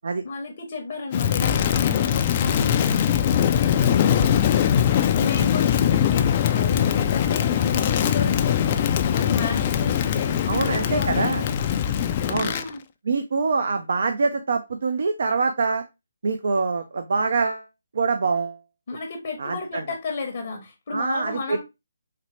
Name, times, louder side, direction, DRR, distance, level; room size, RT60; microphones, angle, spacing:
voice 1, 0.2-8.8 9.1-11.6 12.3-12.8 18.9-21.6, left 3 dB, 45° left, 0.7 m, -33 dB
Crackle, 1.1-12.7, left 9 dB, 30° left, 0.3 m, -21 dB
voice 2, 10.5-11.4 12.3-12.5 13.1-15.8 16.2-17.7 17.9-18.6 19.4-19.8 20.9-21.6, right 4 dB, 60° right, 0.4 m, -24 dB
4.1 x 2.1 x 2.9 m
figure-of-eight pair, 155°, 0 cm